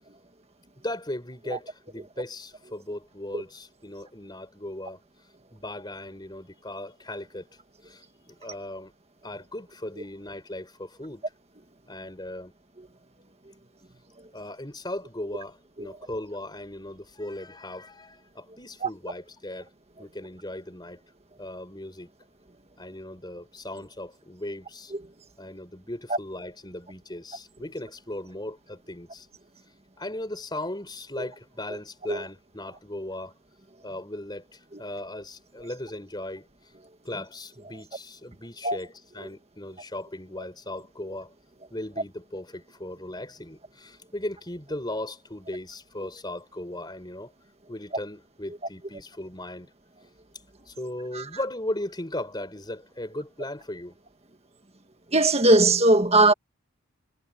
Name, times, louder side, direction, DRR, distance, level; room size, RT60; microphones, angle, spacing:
voice 1, 0.8-5.0 5.5-7.5 7.8-8.9 9.2-11.2 11.9-12.5 14.3-19.7 20.0-21.0 21.4-22.1 22.8-24.9 25.4-29.3 30.0-33.3 33.8-36.5 37.0-41.3 41.7-47.3 47.7-49.7 50.6-54.0, left 1 dB, 20° left, 4.9 m, -37 dB
voice 2, 55.1-56.3, right 2 dB, 30° right, 1.7 m, -18 dB
head